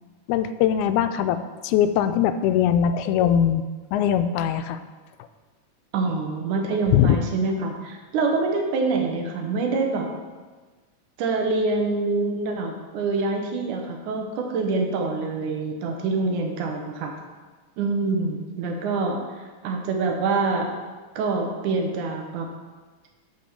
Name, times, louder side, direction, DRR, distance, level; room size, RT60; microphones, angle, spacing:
voice 1, 0.3-3.6 3.9-4.8 6.9-7.2, left 9 dB, 85° left, 10 dB, 1.9 m, -21 dB
voice 2, 5.9-10.1 11.2-17.1 17.8-19.2 19.6-20.7 21.2-22.5, right 3 dB, 85° right, 2 dB, 2.5 m, -25 dB
7.5 x 5.4 x 6.6 m, 1.3 s
omnidirectional pair, 3.4 m